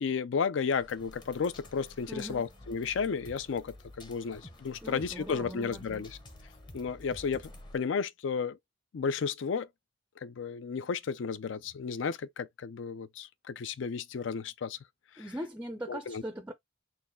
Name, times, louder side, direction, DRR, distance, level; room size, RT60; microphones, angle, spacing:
voice 1, 0.0-6.2 6.7-8.6 8.9-9.7 10.2-14.8 15.2-15.3 15.9-16.2, left 5 dB, 65° left, 0.4 m, -33 dB
sound 1, 0.7-7.8, left 1 dB, 25° left, 0.8 m, -51 dB
voice 2, 2.1-2.5 4.8-6.1 15.2-16.5, right 1 dB, 10° right, 0.4 m, -40 dB
4.1 x 2.2 x 3.6 m
head